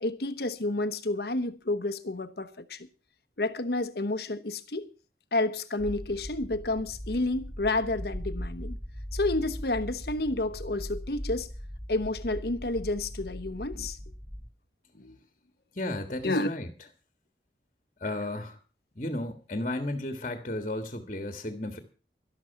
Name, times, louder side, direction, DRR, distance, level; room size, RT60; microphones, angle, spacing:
voice 1, 0.0-2.9 3.4-4.9 5.3-8.8 9.1-11.5 11.9-14.0 14.9-15.2 16.2-16.5, left 2 dB, 60° left, 1.1 m, -30 dB
sound 1, 5.8-14.5, equal, 5° left, 2.8 m, -39 dB
voice 2, 15.7-16.7 18.0-18.6 19.0-21.8, left 1 dB, 40° left, 1.7 m, -33 dB
12.5 x 12.5 x 5.8 m
head